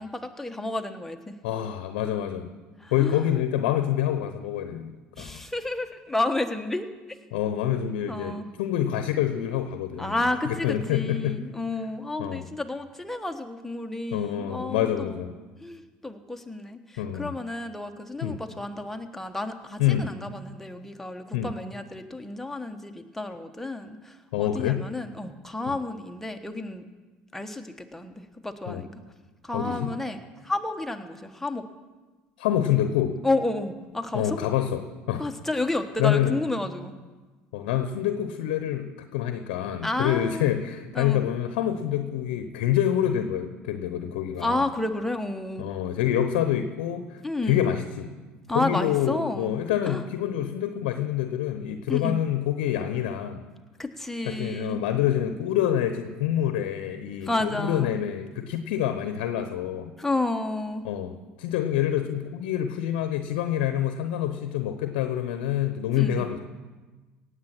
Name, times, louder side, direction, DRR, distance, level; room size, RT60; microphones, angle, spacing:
voice 1, 0.0-1.4 2.8-3.2 5.2-7.2 8.1-8.5 10.0-15.2 15.6-26.8 27.3-28.9 29.4-31.6 33.2-34.4 35.2-36.9 39.8-40.5 40.9-41.2 44.4-45.7 47.2-47.7 48.5-49.5 49.9-50.0 51.9-52.2 53.8-54.8 57.2-57.9 60.0-60.8 65.9-66.3, left 2 dB, 5° left, 5 dB, 1.4 m, -31 dB
voice 2, 1.4-2.5 2.9-5.4 7.3-8.3 8.6-10.2 10.5-11.4 12.2-12.4 14.1-15.3 17.0-17.3 18.2-18.4 19.8-20.1 21.3-21.5 24.3-24.8 25.7-25.8 28.7-28.8 29.5-29.9 32.4-33.2 34.1-35.3 36.0-36.4 37.5-44.6 45.6-48.1 48.5-53.4 54.2-59.9 60.8-66.4, left 11 dB, 75° left, 9 dB, 0.9 m, -27 dB
17.5 x 8.1 x 6.0 m, 1.3 s
hypercardioid pair, 70°, 5 cm